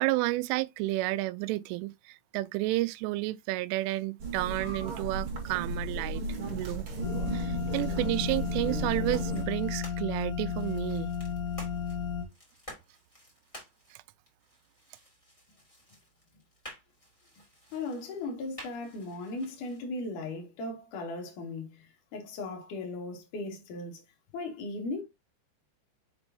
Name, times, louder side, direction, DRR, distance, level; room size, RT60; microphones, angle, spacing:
voice 1, 0.0-6.2 6.5-6.9 7.3-11.1, right 19 dB, 85° right, 3.1 m, -31 dB
sound 1, 4.2-9.4, right 2 dB, 50° right, 1.6 m, -35 dB
sound 2, 7.0-12.2, left 7 dB, 75° left, 3.5 m, -33 dB
sound 3, 9.0-19.8, equal, 10° left, 1.7 m, -52 dB
voice 2, 17.7-21.9 22.1-24.0 24.3-25.0, left 2 dB, 50° left, 2.9 m, -37 dB
7.0 x 5.2 x 2.7 m
omnidirectional pair, 5.6 m